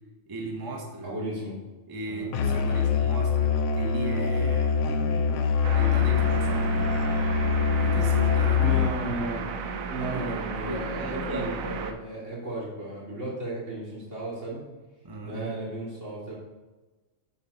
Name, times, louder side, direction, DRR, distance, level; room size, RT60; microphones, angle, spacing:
voice 1, 0.3-1.1 1.9-5.5 5.7-6.9 7.8-8.8 9.1-9.5 10.0-11.8 15.0-15.5, right 2 dB, 20° right, 1 dB, 0.7 m, -37 dB
voice 2, 1.0-1.6 2.1-2.3 8.6-9.4 9.9-14.6 15.2-16.3, right 1 dB, 60° right, -7 dB, 2.9 m, -34 dB
Musical instrument, 2.3-9.1, left 6 dB, 65° left, 0.9 m, -24 dB
sound 1, 5.6-11.9, right 5 dB, 80° right, 1.0 m, -34 dB
7.4 x 4.1 x 5.4 m, 1.2 s
omnidirectional pair, 1.4 m